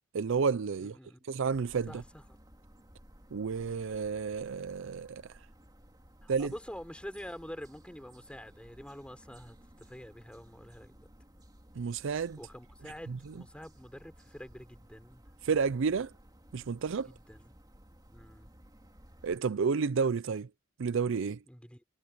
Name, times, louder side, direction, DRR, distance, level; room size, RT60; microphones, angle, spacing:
voice 1, 0.1-1.0 1.3-2.0 3.3-5.2 6.3-6.5 11.8-12.4 13.1-13.2 15.4-16.1 16.5-17.1 19.2-20.5 20.8-21.4, right 5 dB, 65° right, 0.5 m, -30 dB
voice 2, 0.8-1.3 1.9-2.2 6.2-11.1 12.4-15.2 17.0-17.5 18.1-18.5 21.5-21.8, equal, 5° left, 4.3 m, -47 dB
sound 1, 1.5-19.4, right 1 dB, 20° right, 3.1 m, -57 dB
head